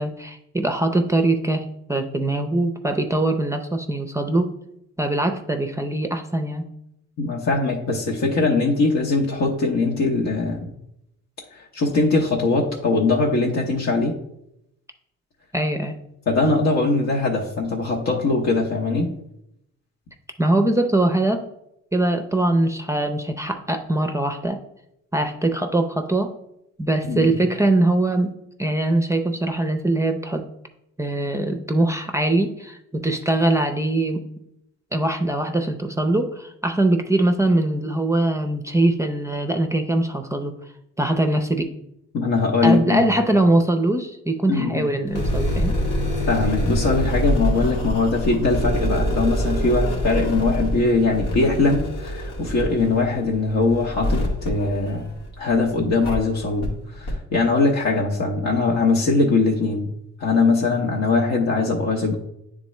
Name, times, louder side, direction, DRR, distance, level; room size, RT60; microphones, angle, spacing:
voice 1, 0.0-4.5 5.0-6.7 15.5-16.0 20.4-21.4 21.9-24.6 25.1-26.3 26.8-28.3 28.6-30.4 31.0-34.2 34.9-40.6 41.0-41.7 42.6-45.8, right 1 dB, 10° right, 5 dB, 0.5 m, -22 dB
voice 2, 7.2-10.7 11.5-14.1 16.3-19.1 27.0-27.3 42.1-43.0 44.5-44.9 46.3-55.1 55.4-59.9 60.2-62.2, left 3 dB, 60° left, -2 dB, 1.0 m, -21 dB
sound 1, 45.1-55.5 56.0-56.1 56.6-56.7 57.0-57.1, equal, 90° left, 1.8 m, -25 dB
9.0 x 3.7 x 3.1 m, 0.81 s
cardioid pair, 90°, 30 cm